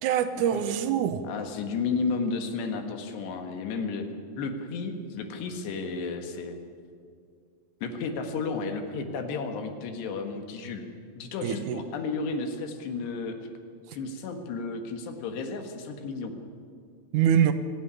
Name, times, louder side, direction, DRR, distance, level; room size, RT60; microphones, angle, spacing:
voice 1, 0.0-1.2 11.4-11.8 13.9-14.0 17.1-17.5, right 9 dB, 85° right, 7 dB, 1.7 m, -24 dB
voice 2, 1.2-4.1 4.4-6.6 7.8-10.9 11.2-13.4 13.9-16.4, left 4 dB, 80° left, 6 dB, 3.6 m, -32 dB
23.5 x 13.0 x 9.9 m, 2.2 s
omnidirectional pair, 4.9 m